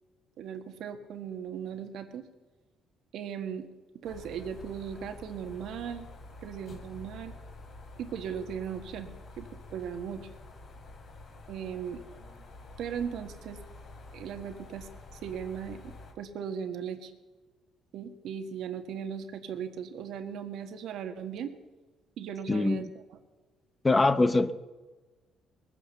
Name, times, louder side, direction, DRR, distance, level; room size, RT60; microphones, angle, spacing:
voice 1, 0.4-2.2 3.1-3.7 4.0-6.1 6.4-7.3 8.0-9.1 9.4-10.3 11.5-12.0 12.8-13.6 14.1-17.1 17.9-21.5 22.2-23.2, right 8 dB, 75° right, 6 dB, 1.6 m, -38 dB
sound 1, 4.0-16.1, left 2 dB, 55° left, 2.9 m, -48 dB
voice 2, 22.5-22.9 23.8-24.5, left 2 dB, 20° left, 13 dB, 0.7 m, -23 dB
20.5 x 9.4 x 6.9 m, 1.2 s
cardioid pair, 110°, 0 cm